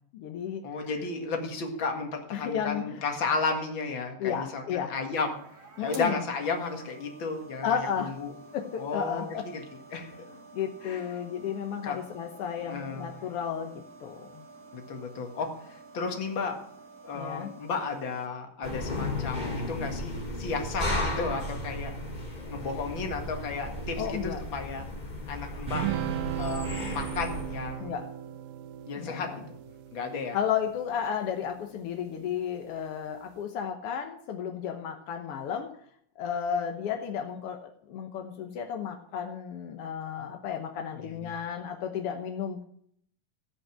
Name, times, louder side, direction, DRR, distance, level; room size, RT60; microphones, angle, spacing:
voice 1, 0.0-0.9 2.3-3.0 4.2-4.9 5.8-6.2 7.6-8.1 8.5-9.4 9.9-13.7 14.0-14.4 17.1-17.5 24.0-24.4 27.8-28.0 28.9-29.4 30.3-35.7 36.2-37.6 37.9-42.6, left 8 dB, 75° left, 4 dB, 1.3 m, -33 dB
voice 2, 0.6-5.4 5.8-8.3 8.8-9.6 9.9-10.3 10.8-11.0 11.8-12.0 12.6-13.1 14.7-15.5 15.9-16.6 17.0-21.9 22.5-24.9 25.3-25.9 26.4-28.0 28.9-29.3 29.9-30.4 41.0-41.3, left 4 dB, 40° left, 3 dB, 2.1 m, -33 dB
sound 1, 4.7-18.3, right 4 dB, 50° right, 2.9 m, -51 dB
sound 2, 18.6-27.8, left 1 dB, 15° left, 2.7 m, -34 dB
sound 3, 25.7-31.3, right 11 dB, 80° right, 2.1 m, -36 dB
16.5 x 5.5 x 7.7 m, 0.66 s
omnidirectional pair, 3.9 m